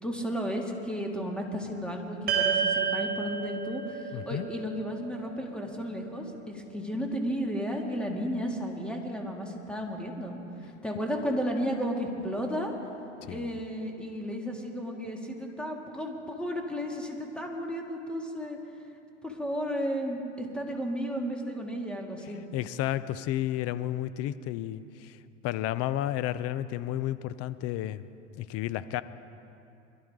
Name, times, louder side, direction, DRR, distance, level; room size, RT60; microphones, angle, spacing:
voice 1, 0.0-10.4 10.6-12.7 13.3-18.6 19.2-22.4, equal, 5° left, 0 dB, 2.3 m, -33 dB
sound 1, 2.3-6.7, right 6 dB, 25° right, 4.4 m, -31 dB
voice 2, 4.1-4.4 13.2-13.5 22.5-25.2 25.4-28.0 28.4-29.0, left 13 dB, 40° left, 15 dB, 0.6 m, -32 dB
23.5 x 12.5 x 3.7 m, 2.7 s
hypercardioid pair, 95°, 36 cm